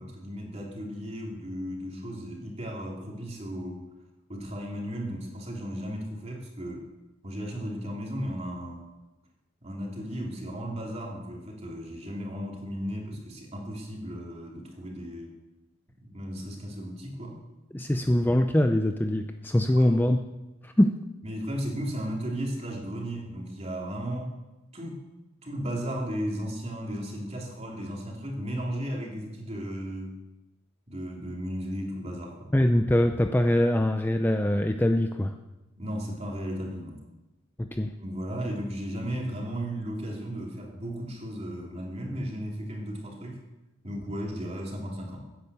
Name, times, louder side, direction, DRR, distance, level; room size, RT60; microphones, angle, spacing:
voice 1, 0.0-3.8 4.3-6.9 7.2-8.9 9.6-15.3 16.0-17.4 19.7-20.0 21.2-24.3 24.7-25.0 25.4-30.2 30.9-32.5 35.8-37.0 38.0-43.4 43.8-45.2, equal, 30° right, -1 dB, 3.2 m, -35 dB
voice 2, 17.7-20.2 20.6-21.0 32.5-35.3 37.6-38.0, left 1 dB, 10° left, 6 dB, 0.5 m, -23 dB
16.0 x 10.0 x 7.0 m, 1.1 s
head